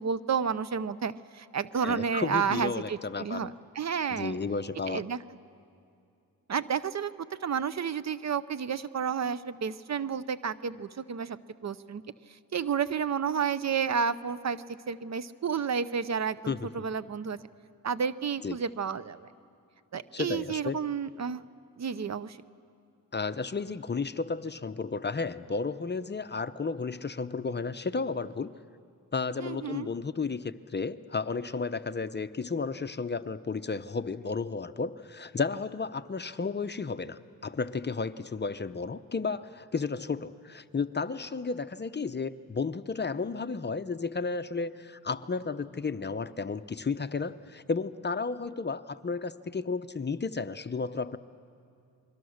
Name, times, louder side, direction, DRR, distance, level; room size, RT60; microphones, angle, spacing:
voice 1, 0.0-4.4 4.9-5.2 6.5-7.1 7.4-11.4 11.6-12.0 12.5-17.4 17.8-19.3 19.9-21.4 21.8-22.4 29.4-29.9, right 6 dB, 50° right, 16 dB, 0.7 m, -31 dB
voice 2, 1.8-3.5 4.1-5.0 16.5-16.9 18.4-18.6 20.1-20.8 23.1-28.6 29.1-51.2, left 4 dB, 30° left, 12 dB, 0.7 m, -33 dB
28.5 x 22.5 x 6.5 m, 2.5 s
cardioid pair, 70°, 36 cm